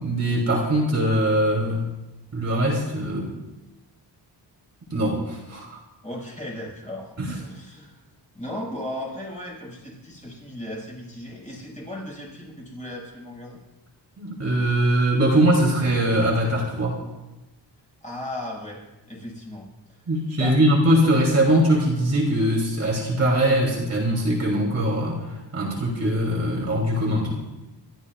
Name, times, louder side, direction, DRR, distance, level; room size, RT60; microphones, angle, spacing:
voice 1, 0.0-1.8 2.3-3.3 4.9-5.8 7.2-7.3 14.2-17.0 20.1-25.2 25.5-27.4, right 1 dB, 35° right, -3 dB, 3.0 m, -21 dB
voice 2, 6.0-8.0 8.3-13.6 18.0-18.8 19.1-19.7 20.4-20.5, left 1 dB, 15° left, -5 dB, 6.3 m, -36 dB
27.5 x 13.5 x 2.5 m, 1.0 s
wide cardioid pair, 145°, 43 cm